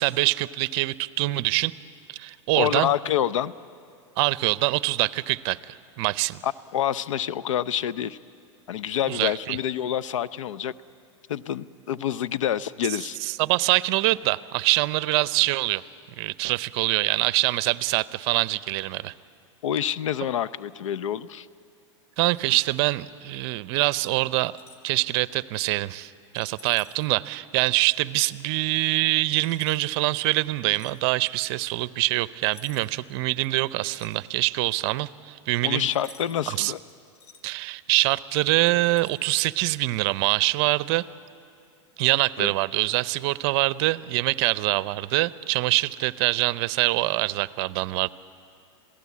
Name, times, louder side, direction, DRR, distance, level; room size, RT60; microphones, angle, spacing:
voice 1, 0.0-1.7 2.1-2.9 4.2-6.4 9.1-9.6 13.2-15.8 16.2-19.1 22.2-24.5 24.8-35.9 36.5-36.7 37.4-41.0 42.0-48.1, right 19 dB, 55° right, 18 dB, 0.6 m, -24 dB
voice 2, 2.6-3.5 6.4-8.2 8.7-10.7 11.3-13.2 19.6-21.5 35.6-36.8 42.4-42.5, left 10 dB, 85° left, 19 dB, 0.7 m, -27 dB
sound 1, 24.5-24.9 26.3-27.1 27.6-28.0 29.3-29.9 30.7-31.0 32.4-33.0 33.4-34.6 35.9-36.5 36.9-37.4 38.5-39.3 39.9-40.1, left 4 dB, 45° left, 1.7 m, -51 dB
26.5 x 17.0 x 8.4 m, 2.5 s
hypercardioid pair, 125°, 16 cm